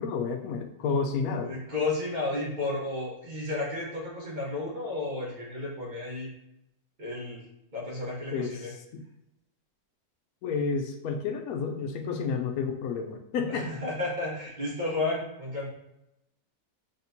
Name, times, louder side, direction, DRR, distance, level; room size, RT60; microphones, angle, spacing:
voice 1, 0.0-1.5 8.3-9.0 10.4-13.8, left 5 dB, 70° left, 6 dB, 1.0 m, -31 dB
voice 2, 1.4-6.3 7.0-7.4 7.7-8.7 13.5-15.7, left 2 dB, 30° right, -4 dB, 1.1 m, -32 dB
4.3 x 3.5 x 2.6 m, 0.87 s
omnidirectional pair, 1.7 m